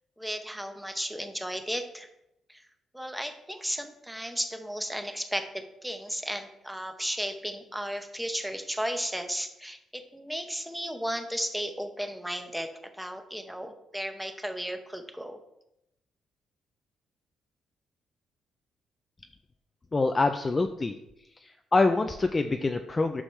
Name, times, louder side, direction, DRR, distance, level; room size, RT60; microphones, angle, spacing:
voice 1, 0.2-2.1 2.5-2.6 2.9-15.4, equal, ahead, 6 dB, 0.7 m, -34 dB
voice 2, 19.9-21.0 21.4-23.2, left 3 dB, 20° left, 6 dB, 0.3 m, -25 dB
9.8 x 6.1 x 3.2 m, 0.84 s
cardioid pair, 150°, 0 cm